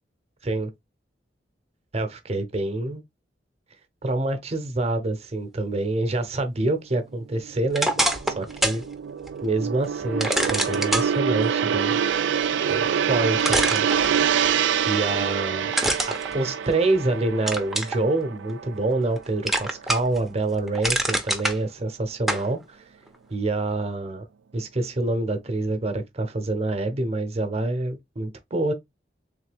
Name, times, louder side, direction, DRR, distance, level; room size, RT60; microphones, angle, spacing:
voice 1, 1.9-3.0 4.0-7.9 8.4-8.8 9.4-12.0 12.7-13.9 14.9-15.7 16.0-22.8 23.3-24.3 24.5-28.7, right 2 dB, 35° right, 0.8 m, -26 dB
Gong, 7.2-19.7 20.0-20.3, right 7 dB, 90° right, 0.4 m, -26 dB
sound 1, 7.7-8.8 9.3-9.4 10.2-11.1 12.9-13.0 13.4-14.5 15.7-17.0 17.5-18.0 18.5-19.2 19.5-20.2 20.5-21.6 22.3-22.5, right 1 dB, ahead, 0.6 m, -25 dB
3.7 x 3.2 x 3.4 m
head